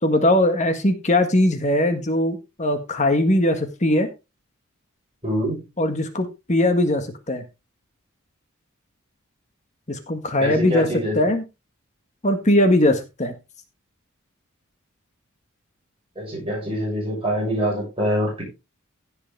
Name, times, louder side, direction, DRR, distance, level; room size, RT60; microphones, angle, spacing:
voice 1, 0.0-4.1 5.8-7.4 9.9-10.9 11.1-11.4 12.2-13.3, left 1 dB, 35° left, 7 dB, 1.6 m, -20 dB
voice 2, 5.2-5.6 10.4-11.2 16.1-18.4, equal, 25° right, -3 dB, 6.8 m, -25 dB
16.0 x 6.7 x 3.5 m, 0.26 s
head